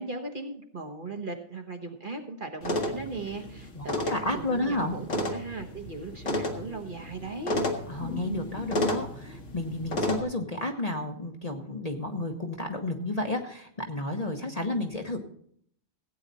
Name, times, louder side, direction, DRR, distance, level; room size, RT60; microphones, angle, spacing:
voice 1, 0.0-7.6, right 3 dB, 40° right, 4 dB, 1.3 m, -38 dB
sound 1, 2.6-10.2, left 1 dB, 65° left, 1.9 m, -32 dB
voice 2, 3.7-4.9 7.9-15.2, left 2 dB, 30° left, 3 dB, 1.0 m, -32 dB
16.0 x 8.9 x 4.1 m, 0.65 s
omnidirectional pair, 1.4 m